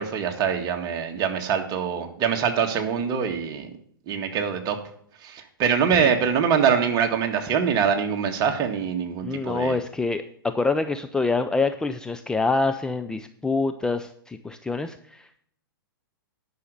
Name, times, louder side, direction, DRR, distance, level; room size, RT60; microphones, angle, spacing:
voice 1, 0.0-3.7 4.1-4.8 5.2-9.8, right 7 dB, 30° right, 4 dB, 1.8 m, -24 dB
voice 2, 9.2-15.4, left 3 dB, 5° left, 8 dB, 0.5 m, -26 dB
10.0 x 6.3 x 6.8 m, 0.64 s
hypercardioid pair, 115°, 12 cm